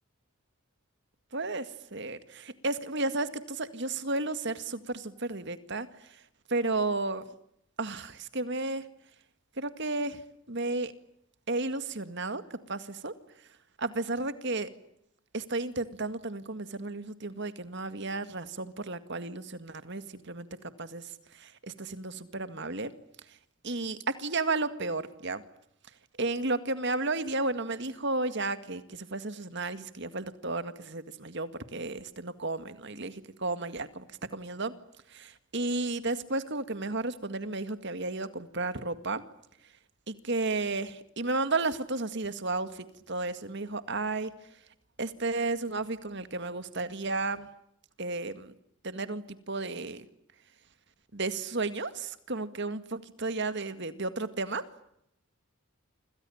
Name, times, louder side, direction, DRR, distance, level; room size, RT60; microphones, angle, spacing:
voice 1, 1.3-1.7 1.9-5.9 6.5-7.2 7.8-8.8 9.6-10.2 10.5-10.9 11.5-13.1 13.8-14.7 15.3-20.5 20.8-21.1 21.4-22.9 23.6-25.4 26.2-34.0 34.3-34.7 35.1-39.2 40.1-44.3 45.0-47.5 48.0-48.5 48.8-50.0 51.1-54.1 54.4-54.6, right 3 dB, 55° right, 11 dB, 2.1 m, -33 dB
29.0 x 26.5 x 7.2 m, 0.76 s
head